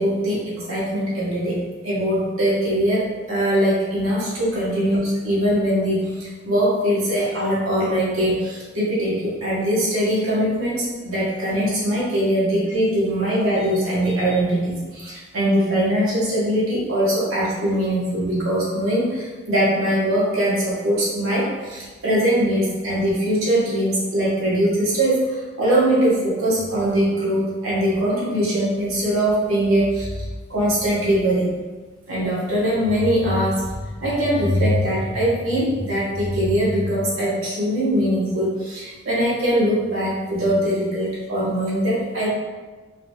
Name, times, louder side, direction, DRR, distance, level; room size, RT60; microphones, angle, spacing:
voice 1, 0.0-30.2 30.5-31.5 32.1-33.6 34.0-42.3, equal, 85° right, -7 dB, 1.1 m, -21 dB
3.8 x 2.3 x 2.9 m, 1.3 s
head